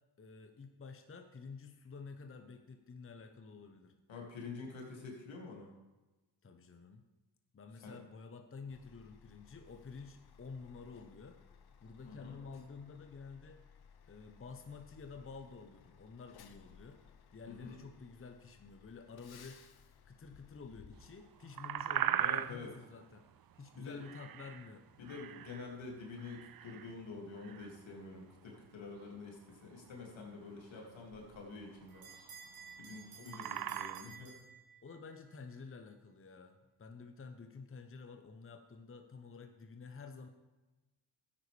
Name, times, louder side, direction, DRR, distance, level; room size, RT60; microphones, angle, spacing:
voice 1, 0.2-4.0 6.4-7.0 7.5-11.4 11.8-13.6 14.1-17.0 17.3-19.6 20.0-23.3 23.6-24.9 33.2-33.5 34.8-40.3, left 4 dB, 25° left, 6 dB, 1.0 m, -50 dB
voice 2, 4.1-5.7 7.8-8.0 12.1-12.4 17.5-17.8 22.2-22.7 23.8-24.0 25.0-32.1 32.8-34.4, left 4 dB, 75° left, -1 dB, 2.6 m, -47 dB
Truck, 8.7-21.8, left 7 dB, 55° left, 0.9 m, -61 dB
sound 1, 21.2-34.1, right 10 dB, 50° right, 0.6 m, -40 dB
Bell, 31.3-35.1, right 6 dB, 80° right, 3.5 m, -54 dB
12.5 x 9.5 x 3.4 m, 1.1 s
supercardioid pair, 50°, 47 cm